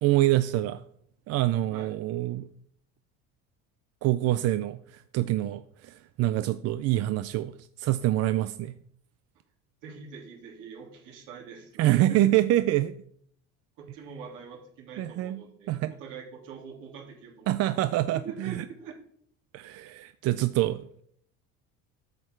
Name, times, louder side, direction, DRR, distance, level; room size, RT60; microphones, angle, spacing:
voice 1, 0.0-0.8 1.3-2.5 4.0-8.8 11.8-13.0 15.0-15.4 15.7-15.9 17.5-18.6 19.5-21.0, right 15 dB, 50° right, 12 dB, 0.4 m, -26 dB
voice 2, 9.8-12.2 13.8-17.8 18.2-18.9, right 6 dB, 70° right, -1 dB, 3.1 m, -44 dB
8.5 x 6.6 x 4.5 m, 0.67 s
cardioid pair, 115°, 33 cm